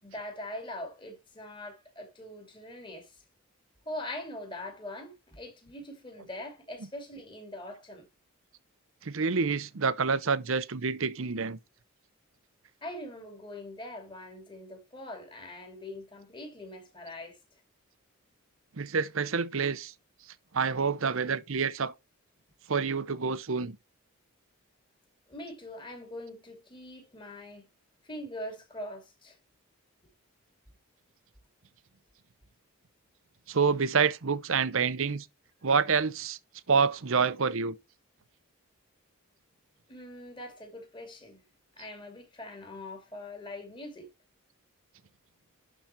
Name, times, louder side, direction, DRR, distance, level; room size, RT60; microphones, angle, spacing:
voice 1, 0.0-3.2 3.9-8.0 12.8-17.4 25.3-27.6 28.0-29.4 39.9-41.4 41.8-44.1, left 1 dB, 20° left, 2.5 m, -42 dB
voice 2, 9.0-11.6 18.8-19.9 20.5-21.9 22.7-23.8 33.5-35.3 35.6-36.4 36.7-37.8, right 5 dB, 65° right, 0.7 m, -27 dB
11.5 x 3.9 x 4.4 m
head